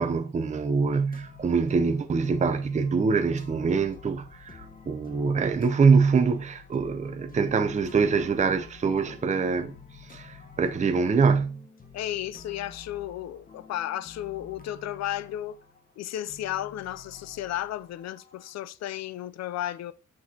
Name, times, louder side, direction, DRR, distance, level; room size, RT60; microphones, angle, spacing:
voice 1, 0.0-9.7 10.1-11.6, right 5 dB, 25° right, 0.6 m, -24 dB
sound 1, 1.0-18.5, left 5 dB, 30° left, 1.1 m, -49 dB
voice 2, 11.9-15.6 16.0-19.9, left 12 dB, 60° left, 0.5 m, -33 dB
8.5 x 6.1 x 2.8 m
cardioid pair, 90°, 30 cm